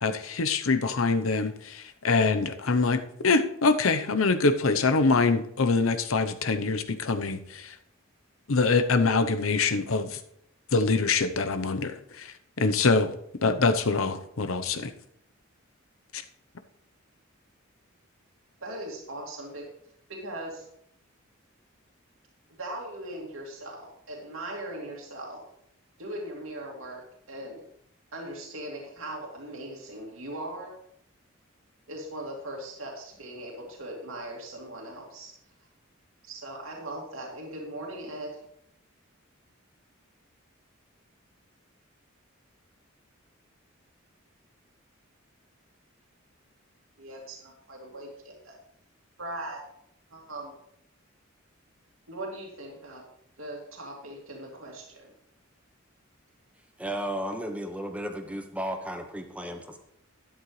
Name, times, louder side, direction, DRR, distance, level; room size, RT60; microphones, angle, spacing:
voice 1, 0.0-7.7 8.5-10.2 10.7-13.1 13.4-14.9 16.1-16.2, left 4 dB, 90° left, 9 dB, 0.8 m, -24 dB
voice 2, 18.6-19.7 20.1-20.7 22.6-25.4 26.0-27.0 27.3-27.6 28.1-30.7 31.9-35.3 36.2-38.3 47.0-48.5 49.2-49.6 50.1-50.5 52.1-53.0 53.4-55.1, right 1 dB, 80° right, -2 dB, 2.4 m, -39 dB
voice 3, 56.8-59.8, equal, 5° right, 5 dB, 0.8 m, -34 dB
12.0 x 10.5 x 3.2 m, 0.72 s
head